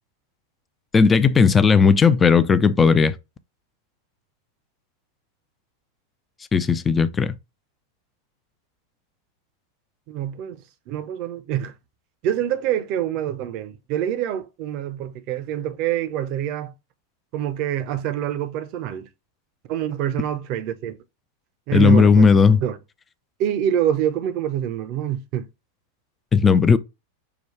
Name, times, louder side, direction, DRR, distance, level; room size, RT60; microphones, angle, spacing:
voice 1, 0.9-3.1 6.5-7.3 21.7-22.6 26.3-26.8, left 5 dB, 15° left, 0.4 m, -15 dB
voice 2, 10.1-11.7 12.2-16.7 17.3-19.1 19.7-21.0 21.7-22.2 22.6-22.8 23.4-25.5, right 10 dB, 45° right, 0.6 m, -26 dB
5.8 x 2.3 x 3.1 m
figure-of-eight pair, 90°, 0 cm